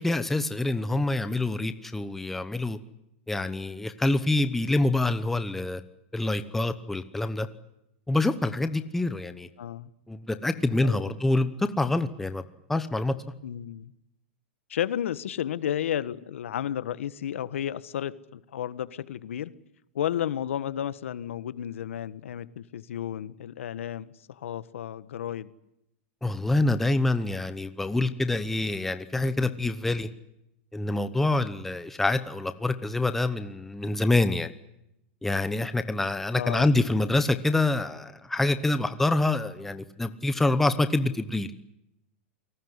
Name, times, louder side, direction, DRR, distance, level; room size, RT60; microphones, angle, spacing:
voice 1, 0.0-2.8 3.3-5.8 6.1-7.5 8.1-9.5 10.1-12.4 12.7-13.1 26.2-30.1 30.7-34.5 35.2-41.5, left 2 dB, 5° left, 10 dB, 1.0 m, -26 dB
voice 2, 9.6-9.9 10.8-11.1 13.4-13.9 14.7-19.5 19.9-25.5 36.3-36.7, left 10 dB, 85° left, 15 dB, 1.5 m, -32 dB
28.5 x 19.0 x 9.8 m, 0.84 s
supercardioid pair, 170°, 7 cm